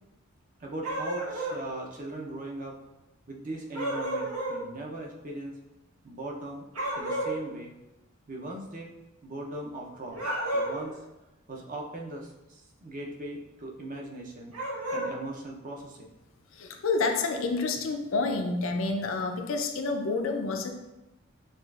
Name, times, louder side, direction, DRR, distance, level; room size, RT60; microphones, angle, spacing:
voice 1, 0.6-2.8 3.3-5.6 6.0-6.7 6.9-7.7 8.3-8.9 9.2-11.0 11.5-14.5 14.9-16.1, right 2 dB, 35° right, -1 dB, 0.5 m, -39 dB
sound 1, 0.8-1.6 3.7-4.6 6.7-7.4 10.1-10.9 14.5-15.1, right 1 dB, 90° right, 1.1 m, -31 dB
voice 2, 16.5-20.7, left 3 dB, 60° left, 4 dB, 0.4 m, -29 dB
6.5 x 2.4 x 2.4 m, 0.96 s
head